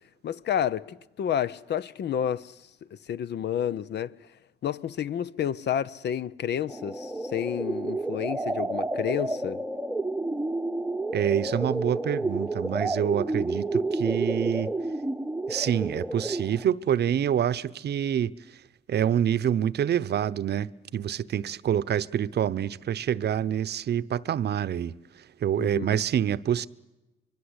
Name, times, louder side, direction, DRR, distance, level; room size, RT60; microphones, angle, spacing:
voice 1, 0.2-2.5 2.9-4.1 4.6-9.6 25.6-26.0, left 9 dB, 60° left, 0.8 m, -30 dB
sound 1, 6.7-16.7, right 2 dB, 5° right, 0.9 m, -30 dB
voice 2, 11.1-14.7 15.5-18.3 18.9-24.9 25.4-26.7, right 9 dB, 55° right, 0.8 m, -26 dB
25.0 x 22.5 x 8.1 m
cardioid pair, 90°, 20 cm